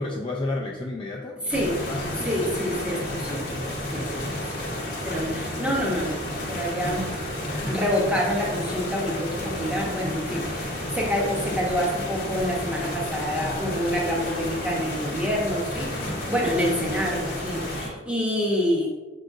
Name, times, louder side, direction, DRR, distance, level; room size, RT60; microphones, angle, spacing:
voice 1, 0.0-1.5 1.9-2.3 2.9-3.1 4.0-4.4 7.5-7.8 10.3-10.5 16.0-16.2, left 2 dB, 25° left, -2 dB, 0.4 m, -33 dB
sound 1, 1.5-17.9, left 1 dB, 50° left, 0.9 m, -31 dB
voice 2, 1.5-1.8 2.2-6.2 6.5-7.1 7.7-15.9 16.3-18.9, equal, 5° right, -3 dB, 0.8 m, -27 dB
5.6 x 3.8 x 2.5 m, 1.3 s
head